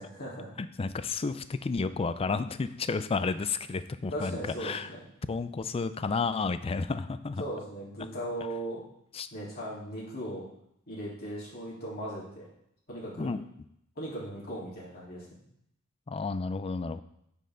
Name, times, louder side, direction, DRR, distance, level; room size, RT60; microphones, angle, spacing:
voice 1, 0.0-0.5 4.1-5.0 7.4-8.8 9.3-10.4 10.9-12.5 12.9-13.3 14.0-15.3, right 1 dB, 45° left, -7 dB, 3.6 m, -38 dB
voice 2, 0.6-4.9 5.3-7.4 9.1-9.3 13.2-13.4 16.1-17.0, left 4 dB, 25° left, 13 dB, 0.4 m, -31 dB
9.6 x 5.5 x 3.8 m, 0.75 s
head